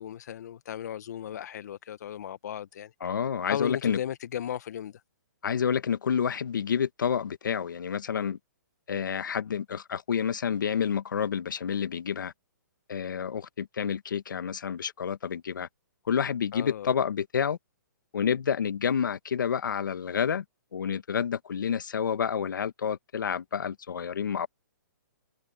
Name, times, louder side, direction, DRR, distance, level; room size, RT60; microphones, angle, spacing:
voice 1, 0.0-2.9 3.5-5.0 16.5-16.9, left 9 dB, 60° left, 0.9 m, -36 dB
voice 2, 3.0-4.0 5.4-8.4 8.9-12.3 12.9-15.7 16.1-17.6 18.1-20.4 20.7-24.5, left 7 dB, 75° left, 1.3 m, -29 dB
hypercardioid pair, 150°, 10 cm